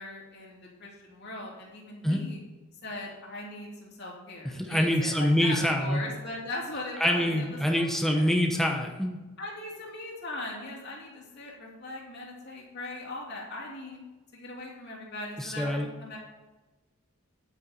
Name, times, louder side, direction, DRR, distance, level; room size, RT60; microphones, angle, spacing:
voice 1, 0.0-2.4 2.8-8.3 9.4-14.0 14.3-16.2, left 2 dB, 50° left, -3 dB, 2.8 m, -39 dB
voice 2, 4.5-6.0 7.0-9.2 15.4-15.9, equal, ahead, 1 dB, 0.8 m, -25 dB
9.8 x 9.2 x 4.2 m, 1.2 s
head